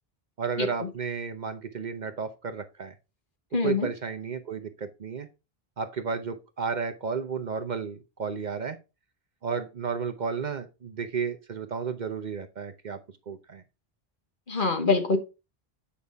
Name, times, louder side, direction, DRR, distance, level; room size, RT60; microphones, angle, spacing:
voice 1, 0.4-2.9 3.6-5.3 5.8-8.8 9.4-13.0 13.3-13.6, right 5 dB, 50° right, 0.8 m, -32 dB
voice 2, 3.5-3.9 14.5-15.2, left 4 dB, 55° left, 1.5 m, -24 dB
8.5 x 5.4 x 3.4 m
omnidirectional pair, 1.0 m